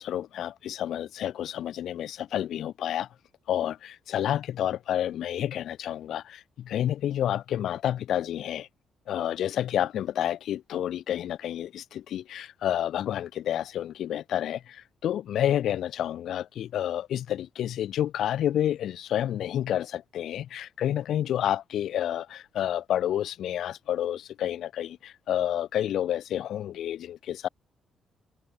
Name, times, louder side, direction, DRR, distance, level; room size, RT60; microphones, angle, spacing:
voice 1, 0.0-3.1 3.5-8.7 9.1-27.5, left 11 dB, 70° left, 2.6 m, -29 dB
cardioid pair, 120°, 0 cm